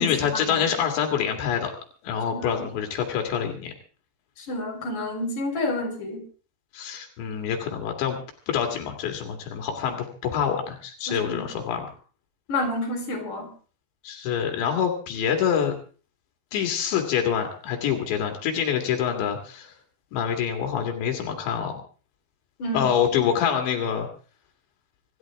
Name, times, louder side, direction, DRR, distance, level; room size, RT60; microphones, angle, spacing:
voice 1, 0.0-1.7 2.0-3.7 6.7-12.0 14.0-15.7 16.5-19.7 20.1-21.7 22.7-24.1, left 8 dB, 85° left, 3 dB, 4.4 m, -26 dB
voice 2, 2.3-2.6 4.5-6.2 11.1-11.5 12.5-13.5 22.6-22.9, left 2 dB, 50° left, 3 dB, 5.4 m, -29 dB
25.5 x 13.0 x 3.6 m, 0.39 s
omnidirectional pair, 5.0 m